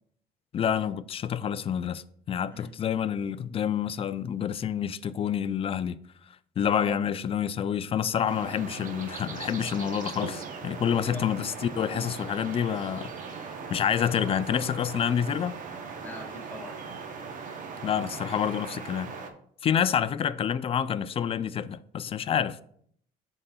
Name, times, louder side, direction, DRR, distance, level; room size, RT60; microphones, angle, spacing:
voice 1, 0.5-6.0 6.6-13.1 13.7-15.6 17.8-19.1 19.6-22.6, left 8 dB, 35° left, 0.4 m, -28 dB
voice 2, 6.7-7.0 11.0-11.3 13.6-13.7 15.8-16.8, equal, 10° left, 1.6 m, -43 dB
sound 1, 8.3-19.3, right 5 dB, 50° right, 0.9 m, -39 dB
11.5 x 3.9 x 2.3 m
cardioid pair, 110°, 17 cm